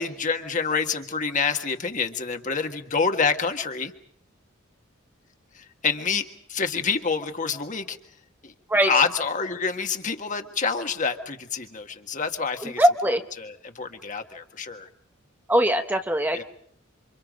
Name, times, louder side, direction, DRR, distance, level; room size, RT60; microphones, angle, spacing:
voice 1, 0.0-3.9 5.5-6.2 6.5-8.0 8.4-8.5 8.8-12.8 13.4-14.9 16.3-16.4, left 5 dB, 40° left, 6 dB, 1.7 m, -27 dB
voice 2, 12.8-13.2 15.5-16.4, right 1 dB, 10° right, 6 dB, 0.9 m, -21 dB
28.0 x 26.0 x 5.2 m, 0.65 s
head